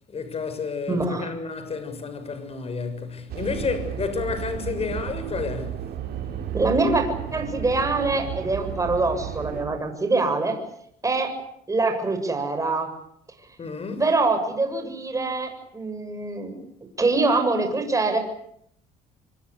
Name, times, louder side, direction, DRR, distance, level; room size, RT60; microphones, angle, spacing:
voice 1, 0.1-5.9 13.6-14.0, left 5 dB, 35° left, 6.7 m, -30 dB
voice 2, 0.9-1.3 6.5-10.6 11.0-11.4 11.7-12.9 14.0-16.6 17.0-18.2, right 3 dB, 20° right, 7.0 m, -24 dB
sound 1, 3.3-9.6, right 9 dB, 70° right, 6.5 m, -33 dB
26.0 x 25.0 x 8.2 m
cardioid pair, 110°, 17 cm